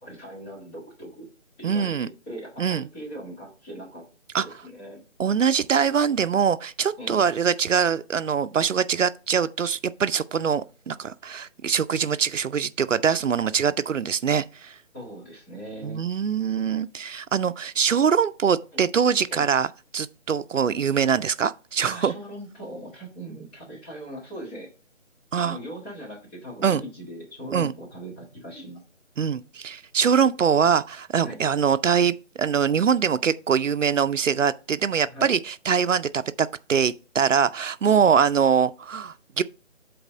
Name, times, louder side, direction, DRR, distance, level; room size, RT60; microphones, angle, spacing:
voice 1, 0.0-1.3 1.6-4.0 4.3-5.0 7.0-7.2 14.9-16.0 18.7-18.8 19.3-19.4 21.8-24.7 25.4-28.8 31.2-31.4 35.0-35.3 37.9-38.1, right 1 dB, 10° left, 1.7 m, -40 dB
voice 2, 1.6-2.1 2.6-2.8 4.3-4.5 5.2-14.8 15.8-19.7 19.9-22.1 25.3-25.6 26.6-26.8 27.5-27.7 29.2-39.4, right 7 dB, 75° right, 0.6 m, -23 dB
7.8 x 4.2 x 5.1 m
figure-of-eight pair, 160°, 38 cm